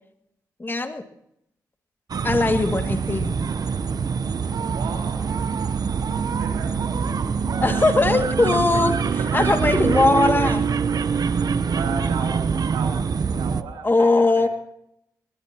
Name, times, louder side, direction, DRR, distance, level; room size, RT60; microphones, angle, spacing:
voice 1, 0.6-1.0 2.2-3.4 7.6-10.7 13.8-14.5, left 2 dB, 25° left, 6 dB, 2.3 m, -20 dB
sound 1, 2.1-13.6, right 5 dB, 55° right, 0.9 m, -24 dB
voice 2, 4.7-5.3 6.3-6.8 7.0-7.8 9.2-9.6 10.9-11.5 11.7-14.1 14.4-14.5, right 6 dB, 85° right, 2 dB, 3.2 m, -36 dB
23.0 x 20.5 x 3.0 m, 0.76 s
supercardioid pair, 50°, 8 cm